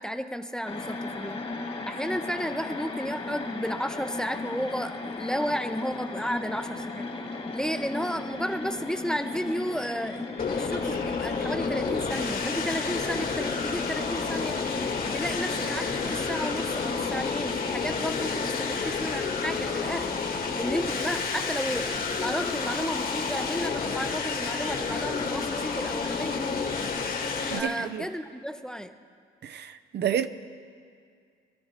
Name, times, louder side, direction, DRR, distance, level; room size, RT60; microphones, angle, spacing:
voice 1, 0.0-1.4 1.9-7.1 7.5-10.2 10.5-14.6 15.1-20.2 20.5-26.5 27.5-29.0, equal, 5° left, 0.6 m, -33 dB
sound 1, 0.7-20.0, left 3 dB, 30° left, 1.4 m, -37 dB
sound 2, 10.4-27.6, left 5 dB, 45° left, 1.6 m, -30 dB
voice 2, 27.5-28.1 29.4-30.3, right 9 dB, 60° right, 0.6 m, -30 dB
25.0 x 13.0 x 3.0 m
cardioid pair, 90°, 20 cm